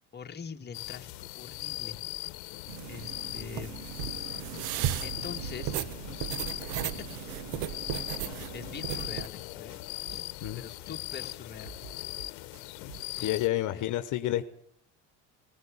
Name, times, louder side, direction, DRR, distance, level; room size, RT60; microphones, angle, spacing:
voice 1, 0.1-2.0 2.9-3.9 5.0-5.8 7.0-7.4 8.5-9.8 10.1-10.2 10.5-11.8 13.2-13.4 13.7-14.0, left 6 dB, 30° left, 4 dB, 1.8 m, -44 dB
sound 1, 0.7-13.5, left 21 dB, 85° left, 1.0 m, -40 dB
sound 2, 2.7-9.3, right 11 dB, 80° right, 1.4 m, -35 dB
sound 3, 8.3-8.4 8.7-8.8 9.0-9.4 9.7-10.9 11.1-11.2 11.5-13.2, right 8 dB, 65° right, 3.9 m, -49 dB
voice 2, 13.2-14.5, left 14 dB, 60° left, 10 dB, 1.2 m, -29 dB
18.5 x 16.5 x 8.7 m, 0.67 s
supercardioid pair, 95°, 34 cm